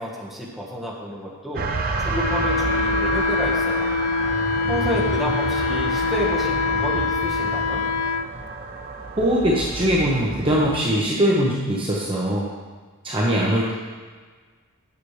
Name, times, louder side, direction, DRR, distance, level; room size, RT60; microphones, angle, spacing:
voice 1, 0.0-1.6 2.0-3.9 4.7-7.8, equal, ahead, -5 dB, 1.4 m, -30 dB
sound 1, 1.5-10.9, right 3 dB, 40° right, 0.6 m, -29 dB
Wind instrument woodwind instrument, 2.1-8.3, left 4 dB, 75° left, 0.4 m, -24 dB
voice 2, 9.2-12.5 13.0-13.7, equal, 25° right, -5 dB, 1.0 m, -21 dB
9.5 x 6.9 x 3.3 m, 1.5 s
head